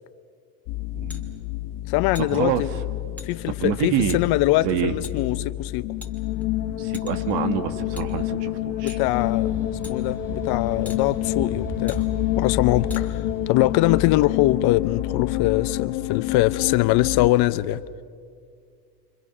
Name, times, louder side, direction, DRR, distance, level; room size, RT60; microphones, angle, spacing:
sound 1, 0.7-17.3, left 16 dB, 65° left, 1.2 m, -28 dB
voice 1, 0.9-1.3 2.2-2.6 3.6-4.2 4.6-4.9 6.8-9.0, right 9 dB, 55° right, 2.0 m, -26 dB
sound 2, 1.1-1.2 2.1-2.4 3.2-3.3 4.1-4.2 5.0-5.2 6.0-6.4 6.9-7.3 8.0-8.1 8.9-9.1 9.8-10.0 10.9-11.0 11.9-12.0 12.9-13.0, left 2 dB, 5° left, 2.5 m, -42 dB
voice 2, 1.9-2.7 3.2-5.8 8.8-9.6 9.9-12.0 12.4-17.8, left 17 dB, 50° left, 0.8 m, -22 dB
sound 3, 9.0-14.2, right 2 dB, 15° right, 6.5 m, -37 dB
29.0 x 25.5 x 6.2 m
supercardioid pair, 115°, 50 cm